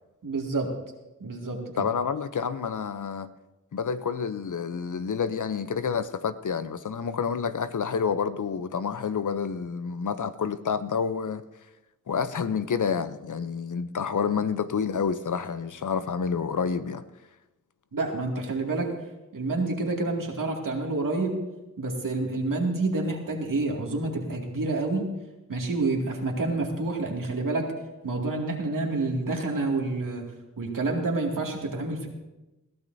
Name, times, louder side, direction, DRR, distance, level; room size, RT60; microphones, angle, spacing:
voice 1, 0.2-0.7 1.2-1.8 17.9-18.9 19.3-21.4 21.8-25.1 25.5-27.7 28.0-30.2 30.6-32.1, right 2 dB, 85° right, 2.3 m, -28 dB
voice 2, 1.8-3.3 3.7-11.4 12.1-17.0, left 6 dB, 70° left, 0.7 m, -29 dB
21.0 x 15.0 x 2.7 m
wide cardioid pair, 95°, 32 cm